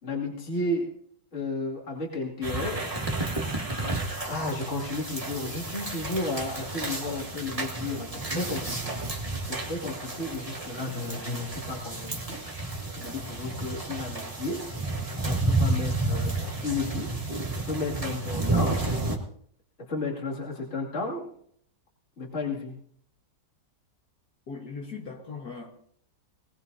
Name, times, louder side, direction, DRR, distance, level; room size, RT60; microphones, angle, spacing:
voice 1, 0.0-0.9 1.3-2.9 4.0-9.0 9.4-12.4 13.0-14.8 15.2-16.3 16.6-17.1 17.7-18.8 19.8-21.3 22.2-22.8, left 2 dB, 40° left, -2 dB, 2.8 m, -33 dB
sound 1, 2.4-19.2, right 2 dB, 20° right, 1.8 m, -31 dB
voice 2, 24.5-25.7, left 4 dB, 60° left, 1 dB, 2.1 m, -39 dB
21.0 x 19.0 x 2.7 m, 0.63 s
omnidirectional pair, 1.9 m